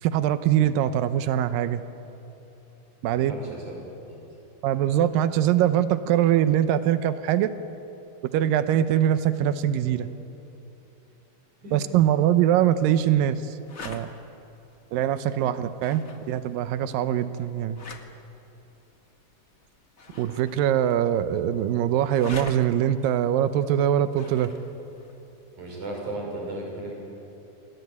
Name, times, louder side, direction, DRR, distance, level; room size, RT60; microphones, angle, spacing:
voice 1, 0.0-1.8 3.0-3.3 4.6-7.5 8.3-10.1 11.7-13.6 13.9-14.1 14.9-17.8 20.2-24.5, right 11 dB, 90° right, 11 dB, 2.6 m, -23 dB
voice 2, 3.1-3.7 4.1-4.2 9.9-10.2 11.6-11.8 25.6-26.9, right 2 dB, 60° right, 0 dB, 7.5 m, -35 dB
sound 1, 12.3-26.1, left 4 dB, 35° left, 1.1 m, -47 dB
27.5 x 21.5 x 9.6 m, 2.9 s
omnidirectional pair, 3.9 m